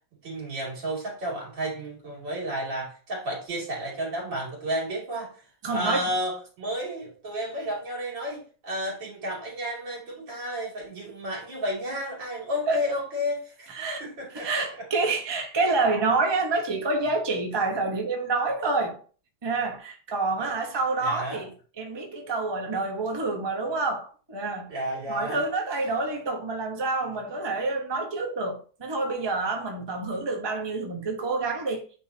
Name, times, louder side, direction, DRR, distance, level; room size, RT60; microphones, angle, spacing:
voice 1, 0.2-5.3 5.7-14.5 20.4-20.5 21.0-21.5 24.7-25.5, equal, 80° right, 3.5 m, -32 dB
voice 2, 5.6-6.1 12.7-12.8 13.7-14.0 14.3-19.0 19.4-21.5 21.8-24.8 25.1-31.8, right 3 dB, 20° right, 0.9 m, -28 dB
9.0 x 3.8 x 2.8 m
omnidirectional pair, 2.0 m